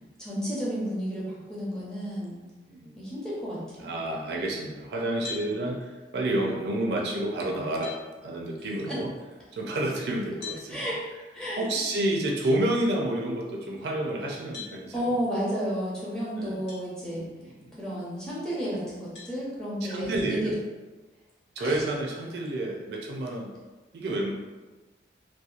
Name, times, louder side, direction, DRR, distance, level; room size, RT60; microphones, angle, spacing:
voice 1, 0.2-2.4 3.0-4.0 5.4-5.6 8.9-9.0 10.7-10.9 11.3-11.8 14.9-17.2 17.8-20.5 21.6-21.8, equal, 5° left, -8 dB, 0.6 m, -32 dB
voice 2, 2.7-3.0 3.8-9.1 9.5-10.8 11.6-15.1 16.4-16.6 17.2-17.8 19.8-20.5 21.6-23.5 23.9-24.3, right 1 dB, 65° right, -1 dB, 0.4 m, -30 dB
sound 1, 5.2-5.5 7.2-7.3 7.8-8.0 10.4-10.6 12.4-12.6 14.5-14.8 16.7-16.8 17.5-17.6 19.1-19.3, left 6 dB, 80° left, 1.1 m, -39 dB
2.8 x 2.1 x 2.4 m, 1.2 s
head